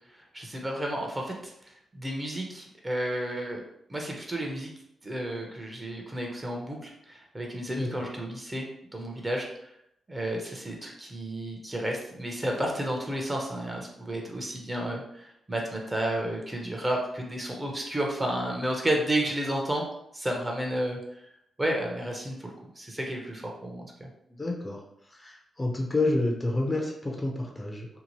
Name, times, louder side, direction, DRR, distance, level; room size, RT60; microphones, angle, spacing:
voice 1, 0.1-3.6 3.9-4.7 5.0-9.7 10.1-19.8 20.1-21.0 21.6-24.1, right 1 dB, 20° right, 0 dB, 0.7 m, -32 dB
voice 2, 7.7-8.1 24.4-24.8 25.1-27.9, left 2 dB, 25° left, 0 dB, 0.6 m, -29 dB
2.8 x 2.1 x 3.0 m, 0.75 s
cardioid pair, 70°, 0 cm